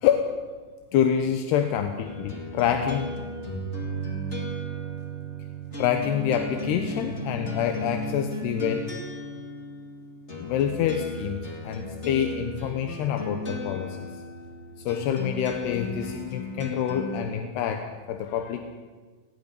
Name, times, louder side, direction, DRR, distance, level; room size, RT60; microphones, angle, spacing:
voice 1, 0.0-0.4 0.9-3.1 5.8-8.9 10.4-11.4 11.6-14.0 14.9-18.6, left 9 dB, 70° left, 6 dB, 2.7 m, -26 dB
sound 1, 2.0-17.3, equal, 35° left, 1.1 m, -35 dB
18.5 x 15.5 x 9.9 m, 1.4 s
omnidirectional pair, 5.8 m